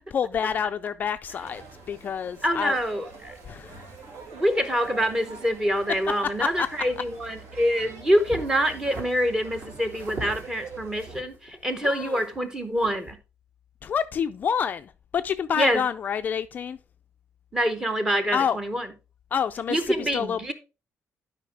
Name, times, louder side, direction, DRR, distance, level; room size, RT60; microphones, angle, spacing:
voice 1, 0.1-1.6 1.9-2.8 3.5-3.8 6.4-6.7 11.8-12.2 13.8-16.8 18.3-18.6 19.3-20.4, left 7 dB, 35° left, 0.3 m, -28 dB
sound 1, 1.3-11.2, right 4 dB, 65° right, 2.3 m, -45 dB
voice 2, 2.4-3.3 4.3-13.2 15.6-15.8 17.5-18.9 19.7-20.5, equal, 15° right, 0.9 m, -25 dB
sound 2, 8.3-9.1 9.5-10.4 11.0-12.5 12.8-13.1, right 2 dB, 45° right, 2.8 m, -40 dB
11.5 x 5.1 x 3.4 m
cardioid pair, 175°, 5 cm